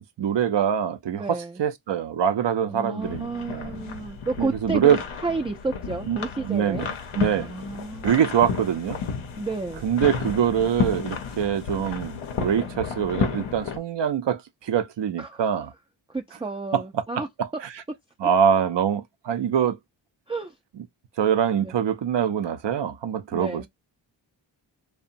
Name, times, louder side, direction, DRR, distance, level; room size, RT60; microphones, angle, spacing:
voice 1, 0.0-3.7 4.4-5.0 6.1-7.5 8.0-9.0 9.8-15.7 16.7-16.8 17.2-17.5 18.2-19.8 21.2-23.7, right 8 dB, 60° right, 0.6 m, -24 dB
voice 2, 1.1-1.6 2.7-5.0 5.2-6.9 7.4-8.1 9.4-9.8 15.2-15.5 16.1-17.3 17.5-17.6 20.3-20.5 21.6-21.7 23.3-23.7, right 3 dB, 10° right, 0.4 m, -31 dB
sound 1, 3.0-13.8, left 6 dB, 80° left, 0.7 m, -32 dB
2.7 x 2.1 x 2.5 m
cardioid pair, 40°, 47 cm